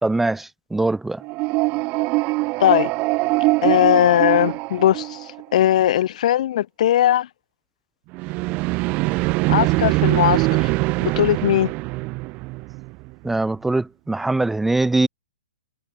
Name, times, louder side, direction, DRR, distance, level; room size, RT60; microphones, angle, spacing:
voice 1, 0.0-1.2 13.2-15.1, right 2 dB, 5° right, 0.5 m, -22 dB
sound 1, 1.2-5.5 8.1-13.1, right 24 dB, 35° right, 1.7 m, -22 dB
voice 2, 2.6-2.9 3.6-7.3 9.5-10.7 11.0-11.7, left 12 dB, 55° left, 2.4 m, -19 dB
hypercardioid pair, 130°, 4 cm